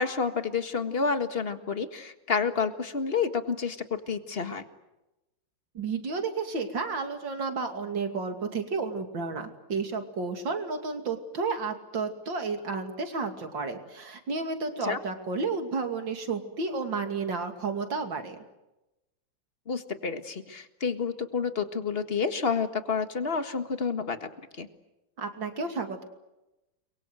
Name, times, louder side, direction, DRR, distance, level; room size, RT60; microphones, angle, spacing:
voice 1, 0.0-4.6 14.8-15.0 19.7-24.3 24.6-24.7, left 5 dB, 35° left, 9 dB, 1.8 m, -29 dB
voice 2, 5.7-18.4 25.2-26.0, right 4 dB, 90° right, 6 dB, 3.4 m, -32 dB
30.0 x 23.0 x 8.0 m, 0.98 s
omnidirectional pair, 2.0 m